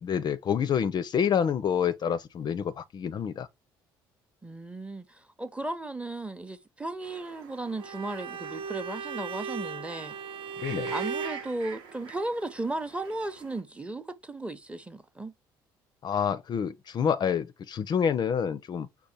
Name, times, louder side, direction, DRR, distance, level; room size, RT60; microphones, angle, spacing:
voice 1, 0.0-3.5 10.6-10.9 16.0-18.9, left 7 dB, 40° left, 0.4 m, -28 dB
voice 2, 4.4-10.1 10.9-15.3, right 2 dB, 10° right, 0.7 m, -35 dB
sound 1, 7.0-13.6, right 5 dB, 75° right, 1.0 m, -47 dB
Bowed string instrument, 7.8-11.5, right 5 dB, 50° right, 0.5 m, -36 dB
5.4 x 2.2 x 4.2 m
hypercardioid pair, 60°, 11 cm